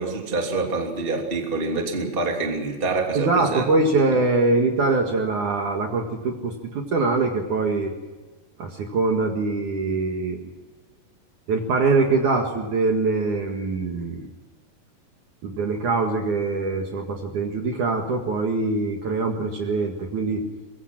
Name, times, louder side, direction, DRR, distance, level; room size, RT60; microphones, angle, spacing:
voice 1, 0.0-3.6, right 3 dB, 15° right, 2 dB, 2.4 m, -26 dB
voice 2, 3.1-7.9 8.6-10.4 11.5-14.3 15.4-20.4, right 3 dB, 55° right, 3 dB, 2.9 m, -23 dB
24.5 x 22.5 x 6.0 m, 1.2 s
omnidirectional pair, 4.9 m